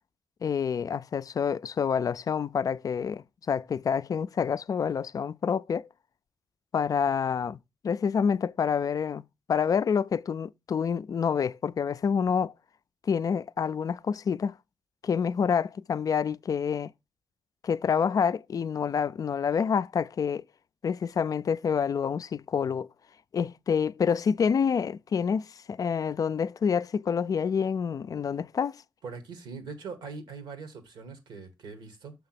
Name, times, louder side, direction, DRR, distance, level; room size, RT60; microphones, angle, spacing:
voice 1, 0.4-5.9 6.7-7.6 7.8-9.2 9.5-12.5 13.0-14.6 15.0-16.9 17.6-20.4 20.8-22.9 23.3-28.8, left 6 dB, 50° left, 0.3 m, -27 dB
voice 2, 29.0-32.1, right 4 dB, 80° right, 1.5 m, -41 dB
5.9 x 3.5 x 5.8 m
cardioid pair, 60°, 8 cm